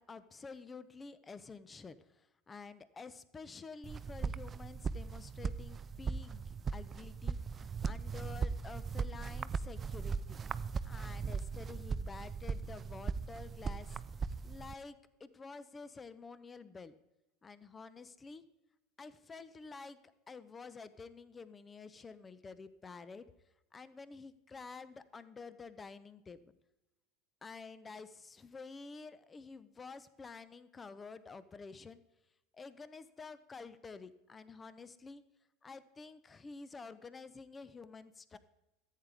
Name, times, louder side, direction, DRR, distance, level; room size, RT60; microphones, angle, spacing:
voice 1, 0.0-10.4 10.8-14.0 14.4-16.9 17.4-18.4 19.0-20.0 20.3-23.3 23.7-26.5 27.4-32.0 32.5-35.2 35.6-38.4, left 4 dB, 20° left, 15 dB, 0.7 m, -50 dB
sound 1, 3.8-14.7, right 5 dB, 30° right, 0.3 m, -39 dB
14.5 x 8.3 x 3.5 m, 0.95 s
figure-of-eight pair, 75°, 0 cm